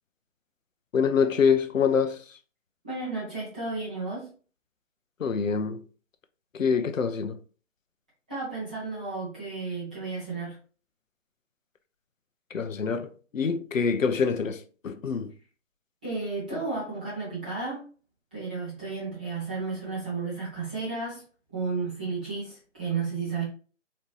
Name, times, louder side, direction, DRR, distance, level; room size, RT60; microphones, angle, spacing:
voice 1, 0.9-2.2 5.2-5.8 6.5-7.4 12.5-15.3, left 6 dB, 90° left, 0.6 m, -25 dB
voice 2, 2.8-4.3 8.3-10.6 16.0-17.8 18.3-21.2 21.5-23.4, right 4 dB, 5° right, 0.5 m, -33 dB
4.2 x 2.8 x 3.1 m
figure-of-eight pair, 150°, 38 cm